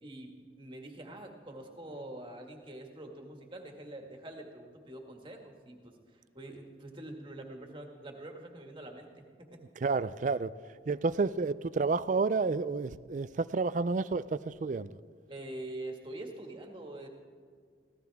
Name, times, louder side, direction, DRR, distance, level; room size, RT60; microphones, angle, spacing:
voice 1, 0.0-9.6 15.3-17.1, right 1 dB, 25° right, 2 dB, 1.9 m, -45 dB
voice 2, 9.8-10.5 10.9-14.9, right 4 dB, 40° right, 16 dB, 0.4 m, -30 dB
24.0 x 16.5 x 3.5 m, 2.1 s
head